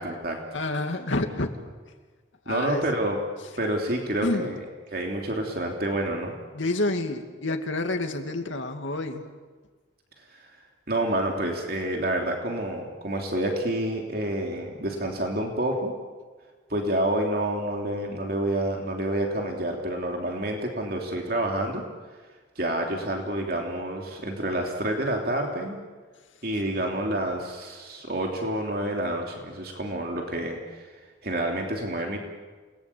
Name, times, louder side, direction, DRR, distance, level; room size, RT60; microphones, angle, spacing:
voice 1, 0.0-0.6 2.5-3.2 3.6-4.6 4.9-6.4 10.3-10.6 10.9-15.9 16.7-21.8 22.5-25.8 26.4-30.9 31.2-32.2, right 1 dB, 50° right, 1 dB, 3.1 m, -28 dB
voice 2, 0.5-1.5 2.5-2.9 4.2-4.5 6.5-9.3, left 2 dB, 85° left, 5 dB, 2.4 m, -28 dB
29.0 x 20.0 x 8.6 m, 1.4 s
head